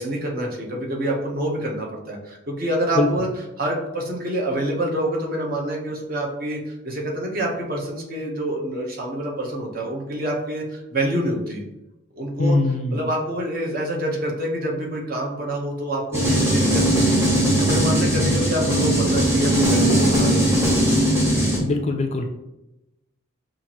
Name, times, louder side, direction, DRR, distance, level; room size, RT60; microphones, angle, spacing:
voice 1, 0.0-3.3 3.6-11.6 12.2-12.6 12.9-20.7, right 1 dB, 45° right, -1 dB, 0.9 m, -27 dB
voice 2, 12.4-13.0 21.6-22.4, left 2 dB, 30° left, 4 dB, 0.3 m, -22 dB
sound 1, 16.1-21.6, right 1 dB, 15° right, 0.9 m, -19 dB
5.7 x 2.5 x 2.9 m, 0.95 s
head